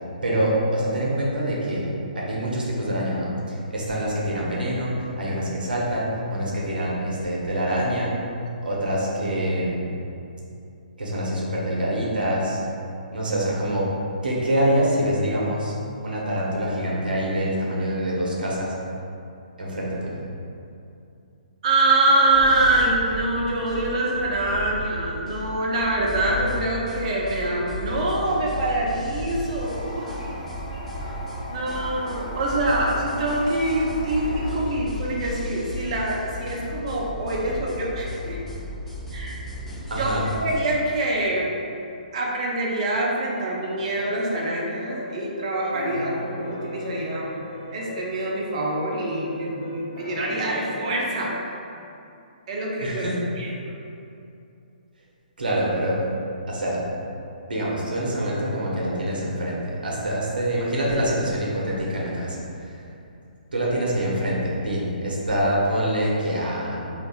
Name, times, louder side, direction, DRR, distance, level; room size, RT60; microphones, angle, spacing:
voice 1, 0.2-1.9 2.2-8.2 8.6-10.0 11.0-12.6 13.1-13.9 14.2-15.7 16.0-18.7 19.6-20.2 39.9-40.2 52.8-53.1 55.4-56.0 56.5-56.8 57.5-62.4 63.5-66.9, equal, 75° right, -4 dB, 0.8 m, -25 dB
voice 2, 21.6-30.1 31.5-38.4 39.1-39.4 39.9-40.1 40.4-41.5 42.1-47.4 47.7-51.3 52.5-53.0 53.4-53.7, right 2 dB, 45° right, -3 dB, 0.6 m, -25 dB
sound 1, 22.3-40.6, left 1 dB, 5° left, 0.8 m, -35 dB
Toilet flush, 29.5-34.5, left 1 dB, 70° left, 1.1 m, -37 dB
sound 2, 43.6-51.3, left 1 dB, 50° left, 0.7 m, -37 dB
3.5 x 2.5 x 2.3 m, 2.7 s
figure-of-eight pair, 135°, 5 cm